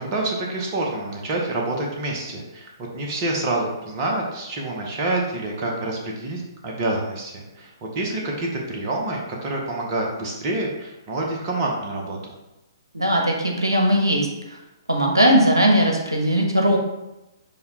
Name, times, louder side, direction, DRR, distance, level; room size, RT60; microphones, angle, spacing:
voice 1, 0.0-12.3, right 2 dB, 30° right, -1 dB, 0.8 m, -27 dB
voice 2, 12.9-14.3 14.9-16.8, equal, 80° right, 0 dB, 0.8 m, -18 dB
6.7 x 2.2 x 2.8 m, 0.96 s
figure-of-eight pair, 125°, 2 cm